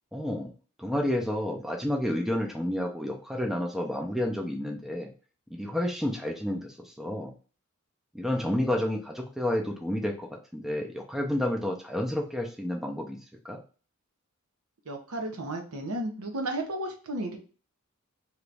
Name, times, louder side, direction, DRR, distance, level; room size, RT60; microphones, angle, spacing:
voice 1, 0.1-0.5 0.8-5.1 5.5-7.3 8.1-13.2 13.4-13.6, left 1 dB, ahead, 2 dB, 0.4 m, -30 dB
voice 2, 14.9-17.4, right 1 dB, 85° right, 3 dB, 0.8 m, -33 dB
3.0 x 2.5 x 3.2 m, 0.38 s
head